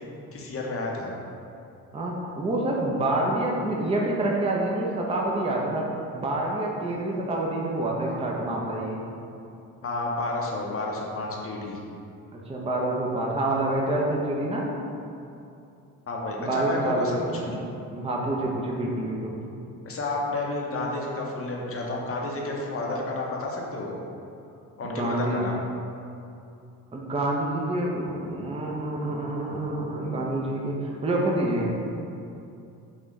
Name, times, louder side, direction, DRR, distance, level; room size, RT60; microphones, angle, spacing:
voice 1, 0.3-1.1 9.8-11.8 16.1-17.6 19.8-23.9 24.8-25.6, left 2 dB, 35° left, -2 dB, 0.7 m, -31 dB
voice 2, 1.9-9.0 12.3-14.7 16.4-17.4 17.9-19.3 24.8-25.4 26.9-31.7, right 1 dB, 15° right, -2 dB, 0.6 m, -27 dB
3.8 x 2.5 x 3.1 m, 2.6 s
hypercardioid pair, 50°, 42 cm